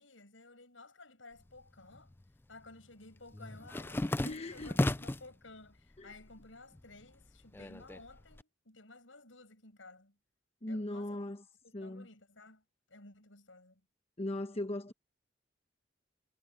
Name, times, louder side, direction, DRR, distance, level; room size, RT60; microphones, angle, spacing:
voice 1, 0.0-2.1 2.5-10.2 10.7-11.2 11.6-13.8, left 2 dB, 85° left, 7.4 m, -55 dB
sound 1, 1.4-2.2 2.5-5.3 5.8-6.4 6.7-8.4, left 1 dB, 10° left, 0.3 m, -35 dB
voice 2, 4.2-4.9 6.0-6.1 10.6-11.4 11.7-12.1 14.2-14.9, left 1 dB, 30° left, 1.1 m, -38 dB
head